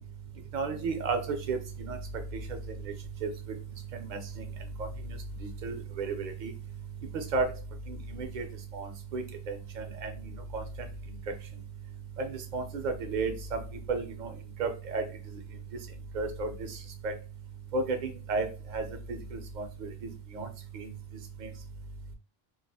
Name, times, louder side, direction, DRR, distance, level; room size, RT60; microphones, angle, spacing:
voice 1, 0.5-1.6 1.9-2.0 3.2-3.3 4.1-4.2 4.8-4.9 5.4-6.5 7.1-7.5 7.9-8.5 8.7-10.1 10.5-10.6 12.2-13.6 13.9-14.3 14.6-15.0 16.1-16.5 17.0-17.1 17.7-18.5 18.7-20.5 20.7-20.9 21.4-21.5, right 4 dB, 55° right, 5 dB, 0.6 m, -33 dB
2.4 x 2.3 x 2.6 m, 0.32 s
omnidirectional pair, 1.0 m